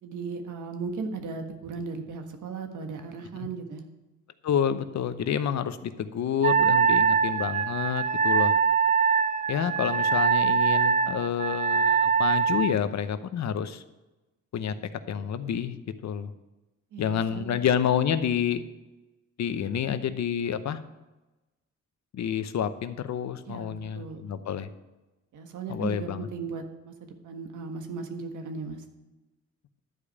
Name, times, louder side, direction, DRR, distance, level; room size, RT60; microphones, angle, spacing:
voice 1, 0.0-3.8 16.9-17.6 23.4-24.2 25.3-28.8, right 4 dB, 85° right, 5 dB, 1.5 m, -37 dB
voice 2, 4.4-8.5 9.5-13.8 14.5-14.7 15.1-15.8 16.0-16.3 17.0-18.6 19.4-20.8 22.1-24.7 25.7-26.3, left 8 dB, 65° left, 11 dB, 0.8 m, -28 dB
Wind instrument woodwind instrument, 6.4-12.8, right 6 dB, 25° right, 0.5 m, -23 dB
11.0 x 5.0 x 8.4 m, 1.1 s
cardioid pair, 90°, 30 cm